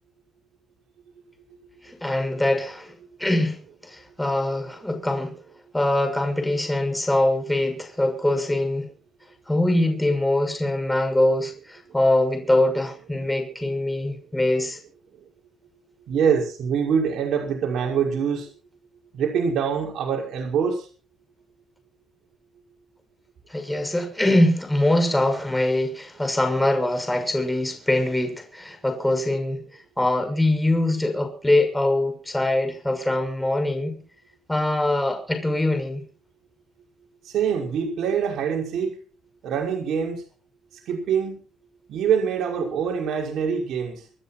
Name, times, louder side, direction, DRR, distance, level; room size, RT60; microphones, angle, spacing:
voice 1, 1.8-5.4 5.7-8.9 9.5-14.8 23.5-29.6 30.0-34.0 34.5-36.0, left 1 dB, 10° left, 6.1 m, -23 dB
voice 2, 16.1-18.5 19.1-20.9 37.2-38.9 39.4-40.2 40.9-41.4 41.9-44.0, right 7 dB, 75° right, 5.5 m, -24 dB
27.0 x 10.0 x 4.3 m
cardioid pair, 90°, 0 cm